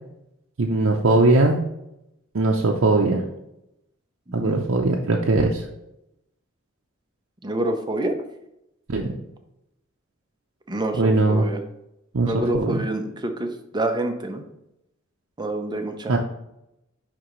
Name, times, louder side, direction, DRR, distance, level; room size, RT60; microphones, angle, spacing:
voice 1, 0.6-1.6 2.3-3.2 4.3-5.7 8.9-9.1 10.9-11.4 12.1-12.8 16.1-16.2, right 2 dB, 65° right, -1 dB, 0.6 m, -20 dB
voice 2, 4.3-4.6 7.4-8.2 10.7-11.6 12.2-14.4 15.4-16.2, right 1 dB, 20° right, 5 dB, 0.7 m, -27 dB
10.0 x 3.7 x 3.1 m, 0.85 s
head